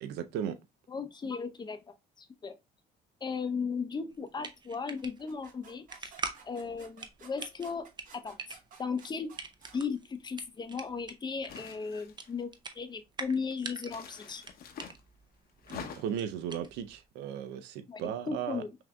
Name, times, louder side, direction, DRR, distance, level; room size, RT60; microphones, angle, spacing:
voice 1, 0.0-0.6 15.7-18.6, right 9 dB, 85° right, 0.5 m, -36 dB
voice 2, 0.9-2.5 3.2-6.1 6.4-9.3 9.7-14.4 17.9-18.8, left 5 dB, 25° left, 0.6 m, -36 dB
sound 1, 4.1-17.1, right 4 dB, 25° right, 0.6 m, -45 dB
sound 2, 5.0-9.8, right 5 dB, 55° right, 1.2 m, -55 dB
sound 3, 11.5-12.4 13.8-15.0 15.6-16.3, left 7 dB, 65° left, 0.8 m, -45 dB
5.8 x 2.6 x 2.2 m
cardioid pair, 110°, 17 cm